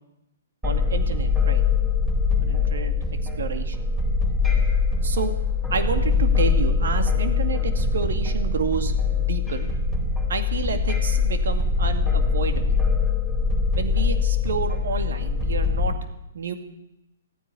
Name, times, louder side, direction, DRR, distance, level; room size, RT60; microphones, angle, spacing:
sound 1, 0.6-15.9, left 4 dB, 5° right, 4.1 m, -23 dB
voice 1, 0.6-1.6 2.4-2.9 3.4-3.9 5.0-5.3 5.7-9.7 10.3-12.7 13.8-15.9 16.3-16.5, right 5 dB, 70° right, 8 dB, 2.2 m, -30 dB
14.0 x 9.8 x 9.8 m, 0.88 s
hypercardioid pair, 135°, 0 cm